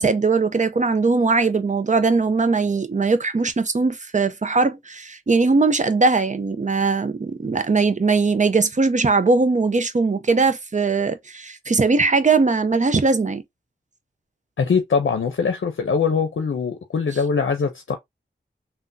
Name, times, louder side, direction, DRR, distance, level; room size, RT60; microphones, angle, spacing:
voice 1, 0.0-13.4, right 4 dB, 40° right, 0.6 m, -20 dB
voice 2, 14.6-18.0, left 5 dB, 70° left, 0.6 m, -22 dB
3.5 x 2.2 x 2.6 m
cardioid pair, 45°, 20 cm